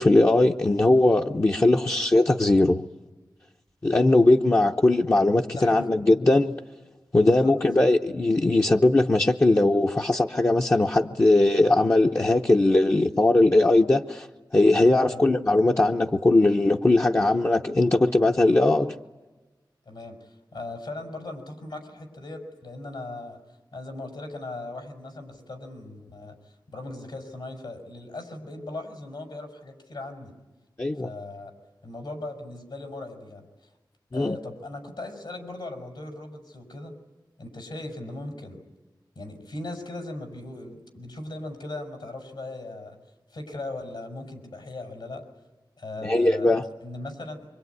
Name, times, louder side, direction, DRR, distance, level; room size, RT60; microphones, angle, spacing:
voice 1, 0.0-2.8 3.8-6.5 7.1-14.3 14.5-18.9 30.8-31.1 34.1-34.4 46.0-46.6, left 2 dB, 35° left, 0 dB, 0.9 m, -20 dB
voice 2, 5.5-5.9 7.2-7.5 15.0-15.2 19.9-23.4 23.7-30.3 30.9-31.5 31.8-33.7 34.1-36.9 37.4-38.6 39.1-43.0 43.3-45.2 45.8-47.5, left 2 dB, 80° left, 4 dB, 6.0 m, -38 dB
25.5 x 24.5 x 9.5 m, 1.2 s
wide cardioid pair, 80°, 8 cm